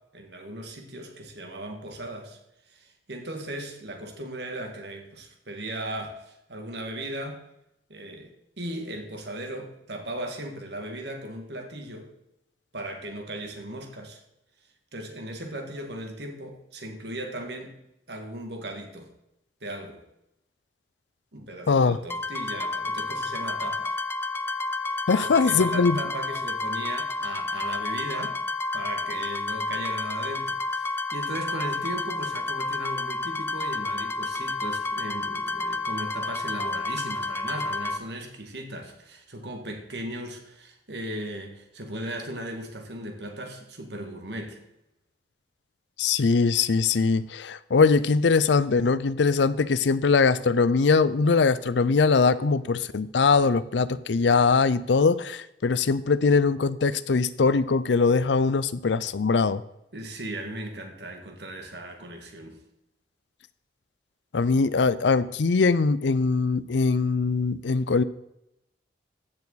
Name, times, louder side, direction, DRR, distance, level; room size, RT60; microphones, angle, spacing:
voice 1, 0.1-2.4 2.7-7.4 7.9-12.1 12.7-14.2 14.9-17.8 18.1-19.1 19.6-20.0 21.3-24.0 25.2-28.4 28.7-44.6 59.9-62.6, right 1 dB, 70° right, 4 dB, 1.9 m, -37 dB
voice 2, 21.7-22.0 25.1-26.0 46.0-59.6 64.3-68.0, left 4 dB, 85° left, 17 dB, 0.5 m, -22 dB
sound 1, 22.1-38.0, left 3 dB, 15° left, 0.5 m, -30 dB
15.5 x 6.9 x 4.1 m, 0.84 s
head